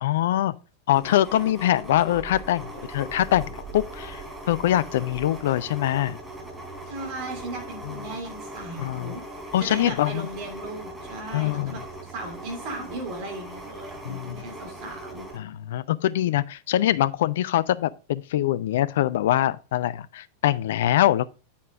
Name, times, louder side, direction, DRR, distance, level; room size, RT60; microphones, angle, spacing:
voice 1, 0.0-0.5 0.9-6.2 7.8-8.0 8.8-9.1 9.5-10.3 11.3-11.8 14.0-14.4 15.3-21.3, left 13 dB, 55° left, 0.5 m, -24 dB
sound 1, 0.9-15.4, right 1 dB, 10° right, 3.6 m, -40 dB
voice 2, 6.9-9.2 9.6-15.3, right 2 dB, 45° right, 2.7 m, -37 dB
8.7 x 8.4 x 2.4 m
figure-of-eight pair, 90°, 0 cm